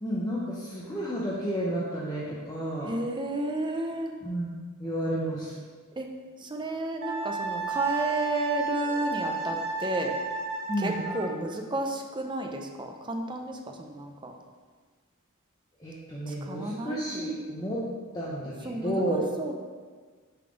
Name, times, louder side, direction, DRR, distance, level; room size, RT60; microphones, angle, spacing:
voice 1, 0.0-2.9 4.2-4.5 4.8-5.5 10.7-11.0 15.8-17.8 18.1-19.2, equal, 15° left, -7 dB, 0.8 m, -31 dB
voice 2, 2.8-4.1 5.9-6.1 6.4-10.2 10.8-14.3 16.3-17.3 18.6-19.5, right 2 dB, 20° right, 3 dB, 0.6 m, -32 dB
Wind instrument woodwind instrument, 7.0-11.3, right 4 dB, 70° right, 1.0 m, -32 dB
6.7 x 4.1 x 5.1 m, 1.5 s
head